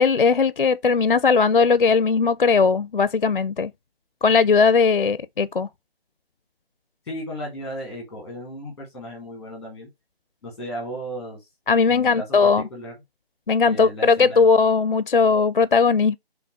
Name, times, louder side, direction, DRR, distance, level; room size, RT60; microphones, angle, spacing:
voice 1, 0.0-3.7 4.2-5.7 11.7-12.6 13.5-16.2, left 5 dB, 55° left, 0.4 m, -18 dB
voice 2, 7.0-9.9 10.4-11.5 11.9-12.9 13.6-14.5, equal, ahead, 1.0 m, -35 dB
6.9 x 3.4 x 4.3 m
figure-of-eight pair, 160°, 31 cm